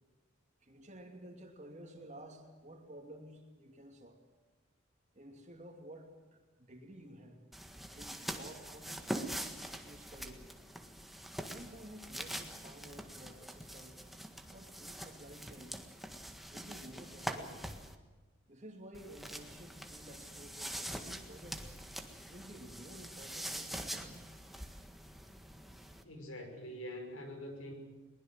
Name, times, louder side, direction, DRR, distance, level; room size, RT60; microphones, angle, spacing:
voice 1, 0.6-4.2 5.1-6.1 6.6-7.4 7.9-9.5 9.8-10.4 11.4-14.0 14.5-15.8 16.5-17.6 18.5-21.7 22.3-24.3, right 1 dB, 35° right, 3 dB, 2.7 m, -52 dB
sound 1, 7.5-17.9 18.9-26.0, right 1 dB, ahead, 1.6 m, -44 dB
voice 2, 26.0-27.7, equal, 85° left, 5 dB, 5.6 m, -44 dB
22.5 x 20.5 x 7.7 m, 1.3 s
head